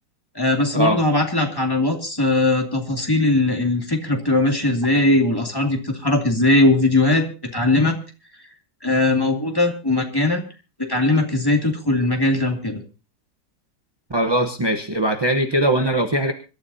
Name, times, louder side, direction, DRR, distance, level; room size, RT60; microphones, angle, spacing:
voice 1, 0.3-7.9 8.8-10.4 10.8-12.8, left 2 dB, 10° left, 2 dB, 2.2 m, -19 dB
voice 2, 14.1-16.3, right 1 dB, 20° right, 6 dB, 0.7 m, -20 dB
25.5 x 13.0 x 2.7 m, 0.33 s
omnidirectional pair, 2.0 m